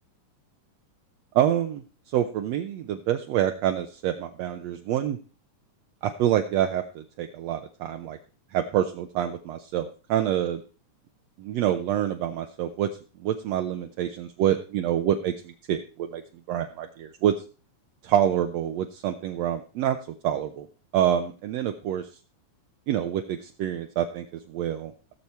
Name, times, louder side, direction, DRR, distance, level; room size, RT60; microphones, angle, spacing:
voice 1, 1.4-5.2 6.0-8.2 8.5-10.6 11.4-12.9 13.2-16.2 16.5-17.3 18.0-20.0 20.2-20.7 20.9-22.1 22.9-25.1, right 11 dB, 75° right, 6 dB, 1.7 m, -27 dB
16.5 x 7.0 x 4.5 m, 0.35 s
omnidirectional pair, 3.5 m